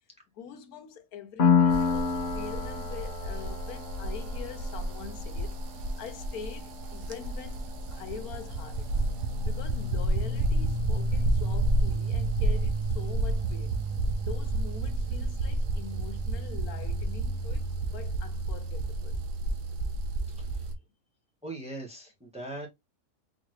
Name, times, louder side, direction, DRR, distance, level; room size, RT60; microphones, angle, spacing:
voice 1, 0.4-8.9 9.5-13.8 14.2-19.2, left 7 dB, 85° left, 1.2 m, -44 dB
Piano, 1.4-8.8, left 6 dB, 40° left, 0.8 m, -30 dB
sound 1, 1.7-20.7, right 2 dB, 65° right, 1.1 m, -30 dB
voice 2, 20.4-20.7 21.4-22.7, right 2 dB, 5° right, 1.1 m, -40 dB
4.2 x 3.1 x 3.0 m
omnidirectional pair, 1.5 m